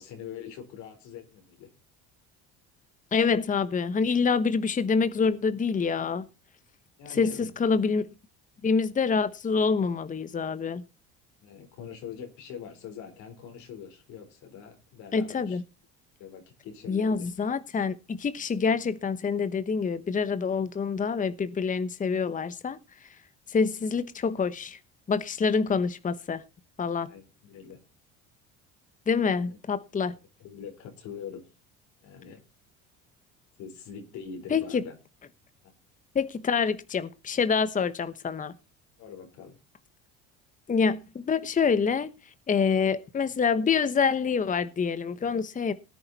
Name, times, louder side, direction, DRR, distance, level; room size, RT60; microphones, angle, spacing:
voice 1, 0.0-1.7 7.0-7.5 11.4-15.6 16.2-17.3 27.0-27.8 30.1-31.4 32.0-32.4 33.6-35.0 39.0-39.6, left 7 dB, 70° left, 4.4 m, -43 dB
voice 2, 3.1-6.2 7.1-8.1 8.6-10.8 15.1-15.6 16.9-23.1 23.5-24.8 25.1-26.4 26.8-27.1 29.1-30.1 34.5-34.8 36.1-38.5 40.7-42.1 42.5-45.7, left 5 dB, 25° left, 1.1 m, -26 dB
18.5 x 9.6 x 4.2 m
supercardioid pair, 95°, 30 cm